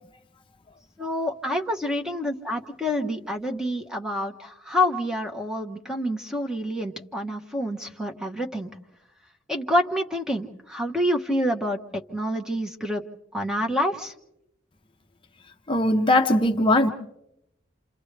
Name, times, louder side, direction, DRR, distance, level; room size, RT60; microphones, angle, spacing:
voice 1, 1.0-8.7 9.5-13.0 13.3-14.1, left 1 dB, 5° right, 2 dB, 1.1 m, -27 dB
voice 2, 15.7-16.9, left 1 dB, 25° left, 5 dB, 0.7 m, -20 dB
28.0 x 28.0 x 3.3 m, 0.84 s
head